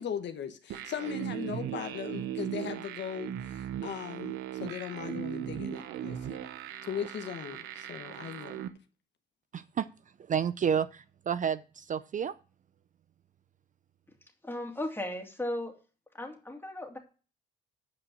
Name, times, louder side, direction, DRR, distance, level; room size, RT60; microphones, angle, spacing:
voice 1, 0.0-6.4 6.8-8.6, left 8 dB, 65° left, 1.0 m, -38 dB
sound 1, 0.7-8.7, right 11 dB, 90° right, 0.8 m, -38 dB
voice 2, 9.5-9.9 10.3-12.3, right 8 dB, 40° right, 0.4 m, -30 dB
voice 3, 14.4-15.7 16.1-17.0, left 1 dB, 10° left, 2.4 m, -36 dB
8.7 x 5.2 x 6.2 m
cardioid pair, 90°, 20 cm